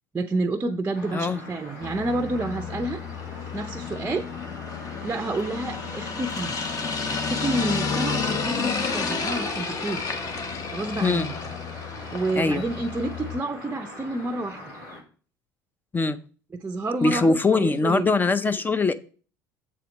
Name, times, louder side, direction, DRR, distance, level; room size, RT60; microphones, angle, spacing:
voice 1, 0.1-3.0 3.5-4.3 5.0-6.5 7.1-10.2 10.7-11.4 12.1-14.7 16.6-18.1, right 2 dB, 20° right, 7 dB, 0.6 m, -29 dB
sound 1, 0.9-15.0, left 1 dB, 85° left, 4.1 m, -42 dB
sound 2, 1.8-13.4, left 5 dB, 40° left, 1.3 m, -31 dB
voice 2, 17.0-19.0, left 3 dB, 20° left, 12 dB, 0.6 m, -22 dB
7.4 x 4.2 x 5.2 m, 0.40 s
hypercardioid pair, 75°, 9 cm